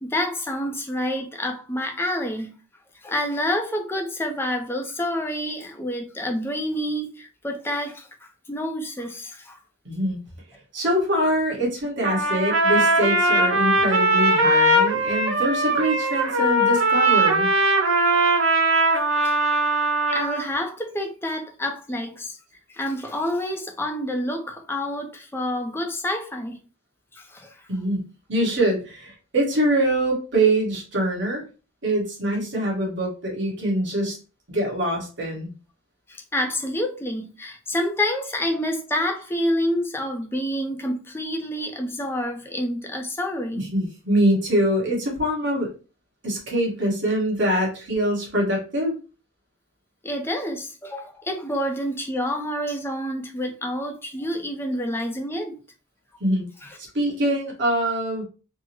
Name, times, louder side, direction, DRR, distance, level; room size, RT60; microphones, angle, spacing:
voice 1, 0.0-2.6 3.0-9.6 19.2-19.3 20.0-22.4 22.7-26.6 27.1-27.5 36.1-43.6 50.0-55.5 56.6-56.8, left 1 dB, 10° left, 0.5 m, -28 dB
voice 2, 9.8-10.2 10.7-17.5 27.7-31.4 31.8-34.2 34.5-35.5 43.5-45.7 46.2-49.0 56.2-56.4 56.8-58.2, right 1 dB, 60° right, 1.4 m, -24 dB
Trumpet, 12.0-20.4, right 1 dB, 75° right, 0.7 m, -20 dB
3.5 x 2.1 x 3.0 m
head